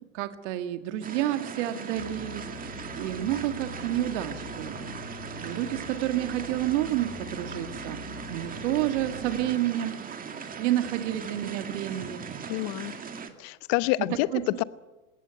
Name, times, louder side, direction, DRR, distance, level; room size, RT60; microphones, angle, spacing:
voice 1, 0.1-4.9 5.4-8.0 8.3-10.0 10.6-12.2 14.3-14.4, right 13 dB, 60° right, 8 dB, 1.9 m, -29 dB
sound 1, 1.0-13.3, right 6 dB, 20° right, 2.1 m, -39 dB
sound 2, 2.0-9.6, left 6 dB, 80° left, 2.5 m, -44 dB
voice 2, 12.5-12.9 13.4-14.6, left 19 dB, 45° left, 17 dB, 0.9 m, -27 dB
20.0 x 17.0 x 9.3 m, 1.2 s
hypercardioid pair, 110°, 42 cm